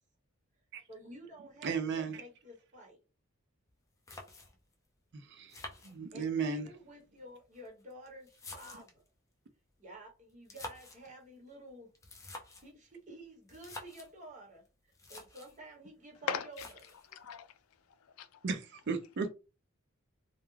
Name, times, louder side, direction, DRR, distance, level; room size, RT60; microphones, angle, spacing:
voice 1, 0.9-3.0 6.1-9.0 9.8-11.9 12.6-14.6 15.1-16.6, right 1 dB, 35° right, 1.0 m, -51 dB
voice 2, 1.6-2.2 5.3-5.6 5.8-6.7 18.4-19.3, right 5 dB, 55° right, 0.4 m, -35 dB
sound 1, 3.7-3.8 4.1-4.7 5.5-6.5 7.4-9.1 10.3-11.1 11.9-12.7 13.5-14.1 14.7-14.8 14.9-15.6 16.5-17.1, left 2 dB, 15° left, 0.4 m, -48 dB
voice 3, 16.2-16.7 17.0-18.5, left 7 dB, 85° left, 0.4 m, -41 dB
2.2 x 2.2 x 3.1 m
head